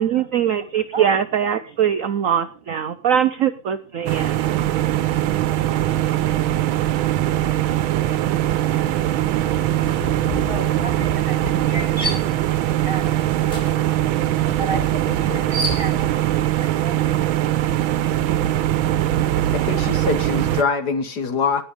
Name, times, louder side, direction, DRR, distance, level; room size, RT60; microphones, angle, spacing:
voice 1, 0.0-4.4, right 9 dB, 65° right, 11 dB, 0.8 m, -21 dB
voice 2, 0.6-1.1 1.4-1.8 2.9-3.1 4.0-4.1 7.2-19.8, right 3 dB, 30° right, 8 dB, 1.6 m, -38 dB
sound 1, 4.0-20.6, right 13 dB, 85° right, 1.6 m, -21 dB
sound 2, 7.3-7.6 7.9-16.3, equal, 30° left, 7.1 m, -33 dB
voice 3, 19.5-21.6, left 5 dB, 55° left, 10 dB, 1.7 m, -23 dB
19.5 x 7.2 x 5.0 m, 0.38 s
omnidirectional pair, 2.2 m